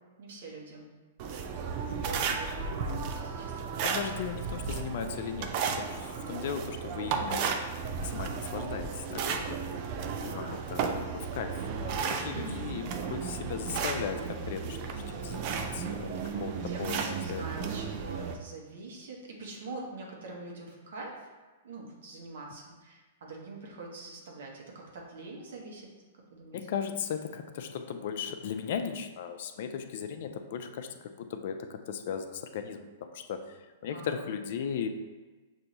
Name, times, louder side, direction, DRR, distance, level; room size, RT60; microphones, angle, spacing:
voice 1, 0.2-0.9 1.8-4.3 10.1-10.6 12.3-12.7 16.2-21.2 21.6-25.9 26.3-26.6 33.9-34.2, right 3 dB, 70° right, -1 dB, 1.1 m, -44 dB
sound 1, 1.2-18.3, right 5 dB, 45° right, 0.4 m, -34 dB
voice 2, 3.8-5.5 5.8-7.6 8.0-9.6 10.2-17.4 26.5-33.6 33.8-34.9, left 7 dB, 60° left, 7 dB, 0.4 m, -37 dB
6.4 x 2.7 x 2.8 m, 1.3 s
hypercardioid pair, 125°, 0 cm